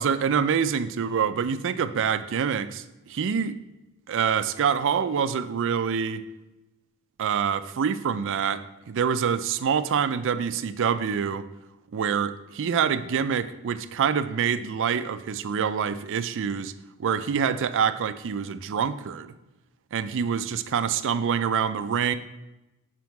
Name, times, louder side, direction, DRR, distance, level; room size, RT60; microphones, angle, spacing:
voice 1, 0.0-3.6 4.1-6.2 7.2-11.5 11.9-16.7 17.0-19.3 19.9-22.2, right 7 dB, 60° right, 12 dB, 0.4 m, -26 dB
7.5 x 5.2 x 4.6 m, 0.99 s
head